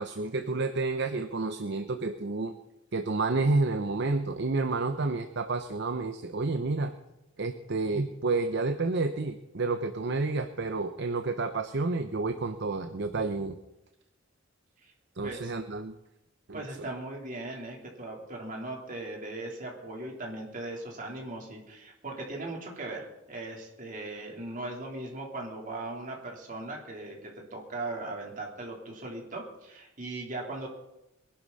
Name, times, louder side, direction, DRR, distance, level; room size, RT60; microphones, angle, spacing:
voice 1, 0.0-2.5 2.9-6.9 7.4-13.6 15.2-15.9 16.5-16.9, right 3 dB, 60° right, 7 dB, 0.8 m, -30 dB
voice 2, 16.5-30.7, right 2 dB, 45° right, -1 dB, 3.7 m, -39 dB
23.0 x 11.5 x 4.2 m, 0.91 s
head